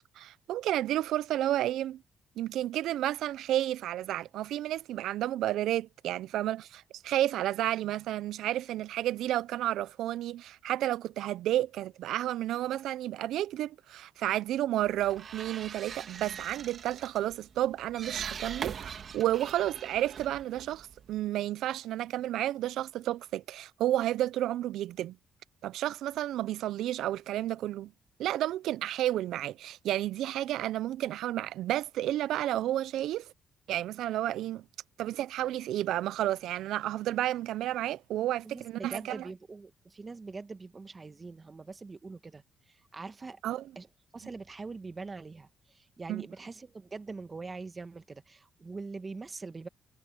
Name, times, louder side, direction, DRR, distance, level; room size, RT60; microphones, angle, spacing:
voice 1, 0.2-2.0 2.4-25.1 25.6-27.9 28.2-33.3 33.7-34.6 35.0-39.2 43.4-43.6 46.1-46.2, right 13 dB, 85° right, 0.4 m, -31 dB
sound 1, 14.8-21.3, right 7 dB, 55° right, 2.5 m, -42 dB
voice 2, 38.4-43.4 43.7-43.9 44.1-49.7, right 4 dB, 30° right, 1.5 m, -43 dB
cardioid pair, 90°, 0 cm